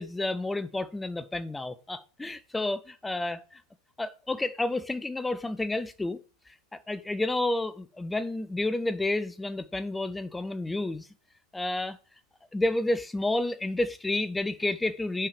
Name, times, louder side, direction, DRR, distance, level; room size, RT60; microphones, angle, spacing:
voice 1, 0.0-3.6 4.0-6.2 6.7-11.1 11.5-12.0 12.5-15.3, left 2 dB, 10° left, 0.5 m, -30 dB
5.6 x 4.8 x 4.9 m
figure-of-eight pair, 90°, 0 cm